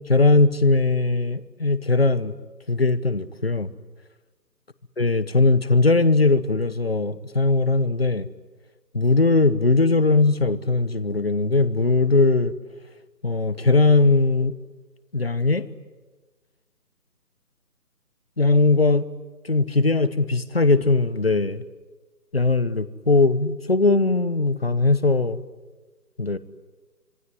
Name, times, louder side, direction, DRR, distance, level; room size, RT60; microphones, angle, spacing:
voice 1, 0.1-2.4 2.7-3.7 5.0-8.3 8.9-12.5 13.2-14.6 15.1-15.7 18.4-19.1 19.5-21.6 22.3-25.4 26.2-26.4, left 3 dB, 40° left, 16 dB, 1.0 m, -20 dB
26.5 x 23.0 x 9.7 m, 1.2 s
figure-of-eight pair, 175°, 49 cm